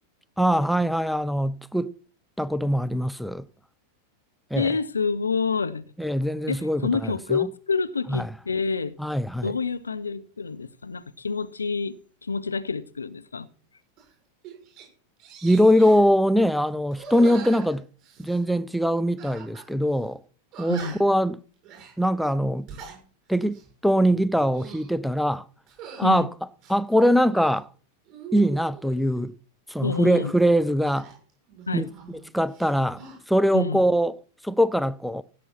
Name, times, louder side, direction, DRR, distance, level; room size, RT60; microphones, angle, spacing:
voice 1, 0.4-1.9 2.4-3.5 4.5-4.7 6.0-7.4 8.1-8.3 9.0-9.5 15.4-17.9 18.2-20.2 20.6-21.4 22.0-22.7 23.3-25.4 26.0-26.3 26.7-27.7 28.3-29.3 29.7-31.1 31.7-33.0 33.3-34.2 34.4-35.2, equal, ahead, 0.4 m, -22 dB
voice 2, 4.6-5.9 6.5-8.9 9.4-12.0 12.2-13.5 20.7-20.9 26.0-26.3 29.8-30.3 31.7-31.9 33.5-33.8, left 5 dB, 75° left, 0.6 m, -28 dB
sound 1, 14.0-14.1 14.4-14.9 15.2-16.1 16.9-18.4 19.2-19.7 20.0-20.1 20.5-21.2 21.6-21.9 22.5-23.0 23.4-23.7 24.3-24.9 25.7-26.1 26.6-27.6 28.1-29.0 30.8-32.2 32.5-33.2, right 6 dB, 35° right, 7.3 m, -42 dB
16.5 x 7.0 x 4.4 m
figure-of-eight pair, 90°, 0 cm